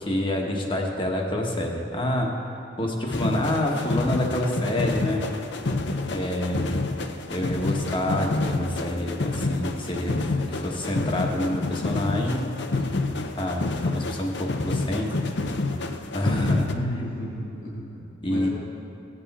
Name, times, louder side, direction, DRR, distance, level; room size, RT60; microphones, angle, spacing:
voice 1, 0.0-2.3 2.8-5.2 6.1-6.8 7.3-12.5 12.8-13.0 13.4-15.1 16.1-16.7 17.5-17.9 18.2-18.5, left 1 dB, 25° left, 1 dB, 1.2 m, -27 dB
sound 1, 3.1-16.7, left 2 dB, 60° left, 0.7 m, -28 dB
voice 2, 16.4-18.5, left 1 dB, 85° left, -7 dB, 3.2 m, -33 dB
17.0 x 8.1 x 4.2 m, 2.8 s
head